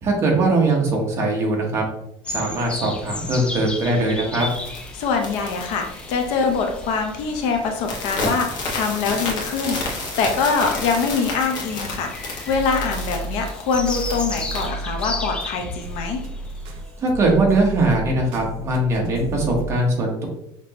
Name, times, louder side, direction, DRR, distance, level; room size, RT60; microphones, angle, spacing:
voice 1, 0.0-1.8 2.3-4.5 17.0-20.3, right 2 dB, 25° right, -1 dB, 1.1 m, -21 dB
sound 1, 2.2-17.0, left 2 dB, 10° left, 0.4 m, -35 dB
sound 2, 4.4-6.9 7.2-7.4 7.8-14.7, left 2 dB, 45° left, 1.2 m, -31 dB
voice 2, 4.9-16.2, left 5 dB, 65° left, 3 dB, 0.8 m, -24 dB
sound 3, 10.0-10.5 10.9-19.7, right 1 dB, 55° right, 0.7 m, -34 dB
6.0 x 3.0 x 2.9 m, 0.79 s
cardioid pair, 175°, 11 cm